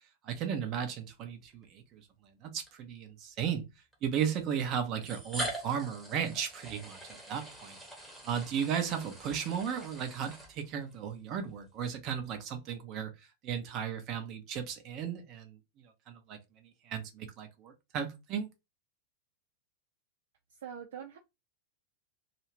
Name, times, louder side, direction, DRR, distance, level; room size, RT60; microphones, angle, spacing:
voice 1, 0.2-3.7 4.0-7.8 8.2-13.1 13.4-18.5, right 8 dB, 35° right, 0.7 m, -35 dB
sound 1, 1.5-1.6 2.7-2.8 3.9-4.0 5.0-10.9, right 1 dB, 5° right, 1.0 m, -43 dB
voice 2, 20.5-21.2, right 8 dB, 60° right, 0.3 m, -44 dB
2.4 x 2.4 x 3.2 m
figure-of-eight pair, 90°, 0 cm